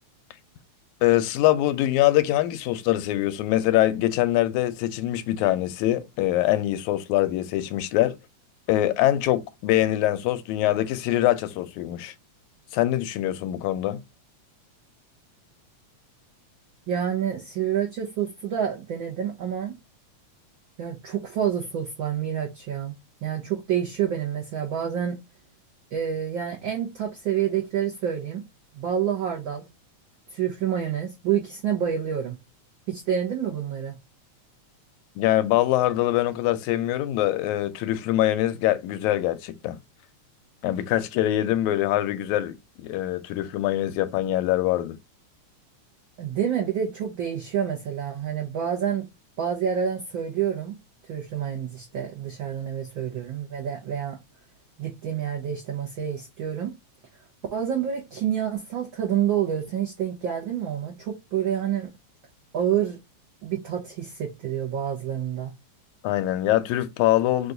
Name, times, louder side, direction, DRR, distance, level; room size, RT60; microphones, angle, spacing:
voice 1, 1.0-8.2 8.7-12.1 12.7-14.0 35.2-39.8 40.6-45.0 66.0-67.5, left 14 dB, 90° left, 2.0 m, -23 dB
voice 2, 16.9-19.7 20.8-22.9 23.2-25.2 25.9-28.4 28.7-29.7 30.3-32.4 32.9-34.0 46.2-49.1 49.4-50.8 51.1-54.2 54.8-56.7 57.5-61.9 62.5-63.0 63.4-65.5, right 9 dB, 85° right, 1.1 m, -28 dB
4.9 x 2.3 x 3.8 m
omnidirectional pair, 3.3 m